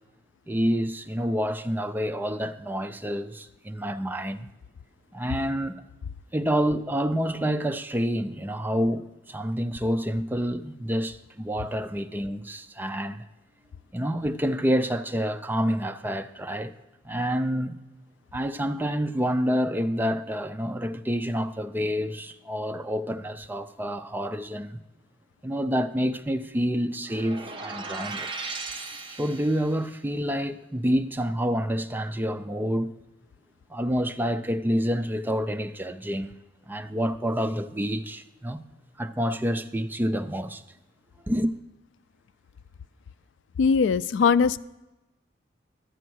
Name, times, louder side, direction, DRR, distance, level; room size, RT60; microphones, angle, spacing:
voice 1, 0.5-4.5 5.1-5.8 6.3-13.3 13.9-16.7 17.0-17.7 18.3-24.8 25.4-28.3 29.2-32.9 33.7-36.3 36.7-38.6 39.0-40.6 41.3-41.5, equal, 10° right, 0.4 m, -28 dB
sound 1, 27.0-29.8, right 3 dB, 25° right, 0.9 m, -37 dB
voice 2, 43.6-44.6, left 5 dB, 75° left, 0.3 m, -20 dB
12.0 x 7.9 x 6.2 m
head